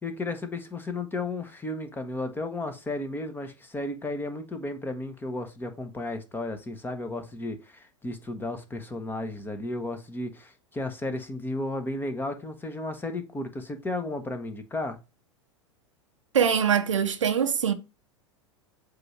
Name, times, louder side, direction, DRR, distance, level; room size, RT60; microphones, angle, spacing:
voice 1, 0.0-15.0, left 2 dB, 15° left, 1.0 m, -33 dB
voice 2, 16.3-17.7, right 7 dB, 75° right, 0.8 m, -23 dB
7.8 x 2.7 x 5.9 m
figure-of-eight pair, 90°, 16 cm